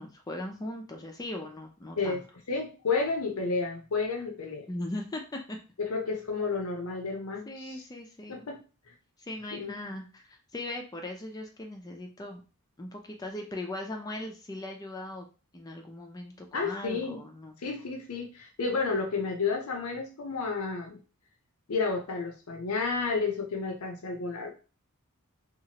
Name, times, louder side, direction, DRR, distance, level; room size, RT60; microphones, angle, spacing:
voice 1, 0.0-2.2 4.7-5.6 7.5-8.5 9.2-12.4 12.8-15.3 15.5-17.6, left 1 dB, 15° left, 2 dB, 0.4 m, -39 dB
voice 2, 2.5-4.7 5.8-7.8 8.3-8.6 9.5-9.7 16.5-17.2 17.6-21.0 21.7-24.5, left 4 dB, 85° left, 2 dB, 0.6 m, -31 dB
2.9 x 2.4 x 2.8 m, 0.34 s
head